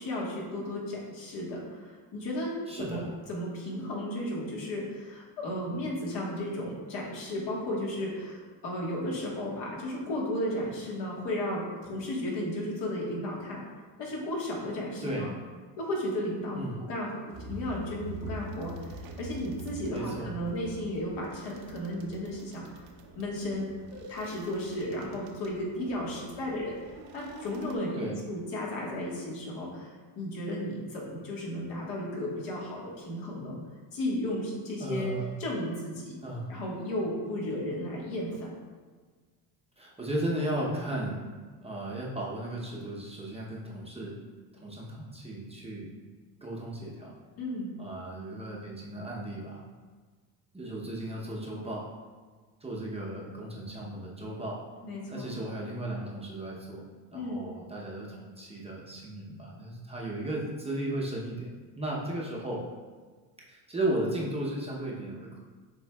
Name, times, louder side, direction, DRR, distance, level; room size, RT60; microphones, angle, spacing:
voice 1, 0.0-3.0 3.3-13.6 14.0-15.3 15.8-22.6 23.1-33.6 33.9-35.1 35.4-36.1 36.5-38.5 47.4-47.7 54.8-55.3 57.1-57.4, left 1 dB, 65° left, -3 dB, 1.5 m, -34 dB
voice 2, 2.7-3.1 15.0-15.3 16.5-16.8 19.9-20.3 27.9-28.1 34.8-35.3 36.2-36.5 39.8-41.3 41.6-44.2 44.6-45.9 46.4-47.2 47.8-49.6 50.5-51.8 52.6-54.6 55.1-56.8 57.1-61.5 61.8-62.6 63.5-65.4, right 1 dB, 15° right, -4 dB, 0.7 m, -35 dB
sound 1, 17.3-27.8, right 2 dB, 55° right, 0.7 m, -45 dB
7.2 x 3.1 x 2.3 m, 1.4 s
cardioid pair, 105°, 46 cm